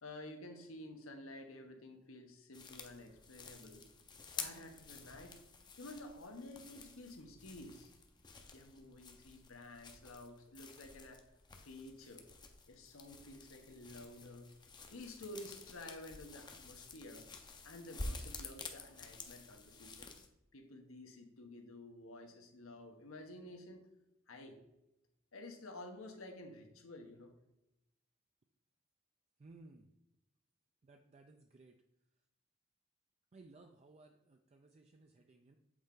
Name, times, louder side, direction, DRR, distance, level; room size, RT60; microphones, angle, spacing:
voice 1, 0.0-3.9 4.4-5.4 5.8-7.9 8.5-11.2 11.6-12.2 12.7-14.5 14.9-17.3 17.6-20.1 20.5-23.9 24.3-24.6 25.3-27.3, left 1 dB, 85° left, 4 dB, 1.0 m, -51 dB
sound 1, 2.5-20.3, left 3 dB, 20° left, 0.6 m, -50 dB
voice 2, 29.4-29.9 30.8-31.8 33.3-35.6, right 3 dB, 30° right, 4 dB, 0.4 m, -60 dB
7.9 x 4.3 x 3.8 m, 0.89 s
head